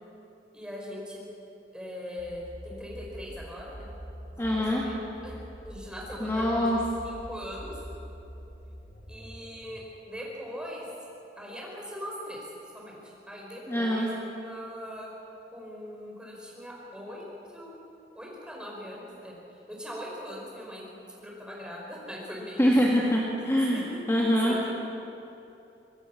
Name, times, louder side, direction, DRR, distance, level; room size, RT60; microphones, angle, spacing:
voice 1, 0.5-1.2 1.7-3.9 4.3-4.9 5.2-5.3 5.6-6.7 7.0-7.7 9.1-9.8 10.1-10.9 11.4-12.5 12.7-13.0 13.3-14.1 14.4-15.1 15.5-17.8 18.2-19.4 19.7-20.9 21.1-23.0 23.7-23.8 24.4-24.7, equal, 5° right, -3 dB, 5.2 m, -40 dB
sound 1, 2.2-9.8, equal, 45° left, 4.8 m, -45 dB
voice 2, 4.4-4.8 6.2-6.8 13.7-14.1 22.6-24.6, equal, 15° left, -4 dB, 2.1 m, -24 dB
24.5 x 19.5 x 6.0 m, 2.9 s
head